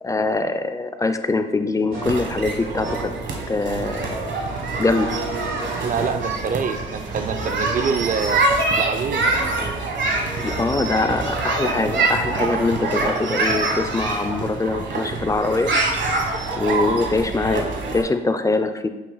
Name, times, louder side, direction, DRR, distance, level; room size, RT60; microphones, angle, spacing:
voice 1, 0.0-3.1 3.5-4.3 4.8-5.2 10.4-15.7 16.6-18.9, left 3 dB, 15° left, 9 dB, 0.4 m, -23 dB
sound 1, 1.9-8.5, right 3 dB, 90° right, 1.9 m, -35 dB
sound 2, 2.0-18.0, right 3 dB, 65° right, 1.3 m, -25 dB
voice 2, 5.8-9.3, right 6 dB, 40° right, 10 dB, 0.5 m, -26 dB
8.4 x 2.9 x 3.9 m, 1.1 s
cardioid pair, 90°, 20 cm